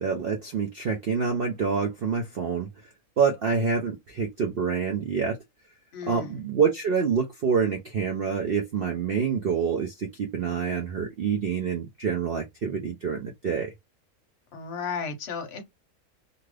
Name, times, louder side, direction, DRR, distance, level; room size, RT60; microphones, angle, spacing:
voice 1, 0.0-2.7 3.2-5.4 6.1-13.7, right 6 dB, 60° right, 0.6 m, -27 dB
voice 2, 5.9-6.4 14.5-15.6, left 5 dB, 50° left, 0.9 m, -34 dB
2.7 x 2.4 x 3.2 m
omnidirectional pair, 1.5 m